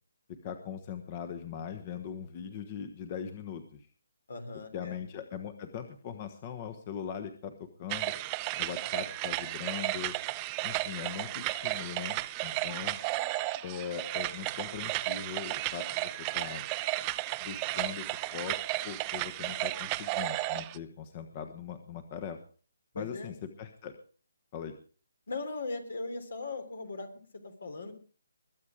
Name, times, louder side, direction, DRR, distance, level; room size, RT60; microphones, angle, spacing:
voice 1, 0.3-3.9 4.7-8.1 8.6-10.1 10.6-13.0 13.6-16.6 17.4-18.6 18.8-22.4 22.9-23.9 24.5-24.7, left 8 dB, 30° left, 9 dB, 1.2 m, -40 dB
voice 2, 4.3-5.0 12.5-13.0 22.9-23.3 25.3-27.9, left 3 dB, 70° left, 9 dB, 3.4 m, -39 dB
sound 1, 7.9-20.8, right 17 dB, 20° right, 0.6 m, -34 dB
22.0 x 8.6 x 5.0 m, 0.40 s
figure-of-eight pair, 150°, 0 cm